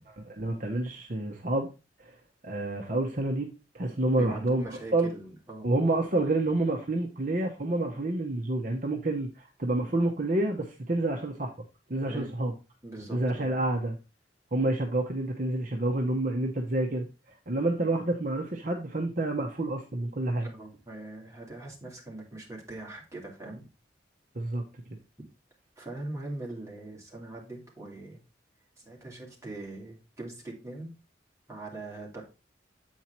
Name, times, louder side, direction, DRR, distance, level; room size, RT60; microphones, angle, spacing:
voice 1, 0.2-1.7 2.0-2.1 2.4-3.5 3.7-5.1 5.6-11.5 11.9-12.5 13.1-14.0 14.5-17.1 17.5-20.5 24.3-24.6, right 2 dB, 45° right, 2 dB, 0.9 m, -28 dB
voice 2, 4.2-5.7 12.1-12.3 12.8-13.7 20.4-23.7 25.8-28.2 28.8-30.9 31.5-32.2, right 2 dB, 15° right, -2 dB, 2.5 m, -41 dB
8.3 x 4.6 x 4.4 m, 0.30 s
head